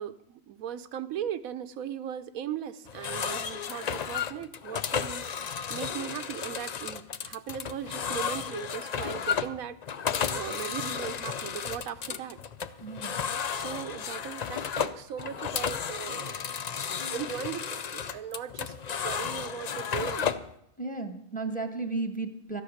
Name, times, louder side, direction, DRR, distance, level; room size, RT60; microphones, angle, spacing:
voice 1, 0.0-5.2 5.7-9.8 10.3-12.4 13.5-16.4 17.1-20.3, right 9 dB, 80° right, 12 dB, 1.1 m, -38 dB
sound 1, 2.9-20.5, left 7 dB, 80° left, 0.3 m, -33 dB
voice 2, 12.8-13.2 20.8-22.6, right 3 dB, 5° left, 7 dB, 1.2 m, -34 dB
13.5 x 9.9 x 6.4 m, 0.75 s
omnidirectional pair, 1.4 m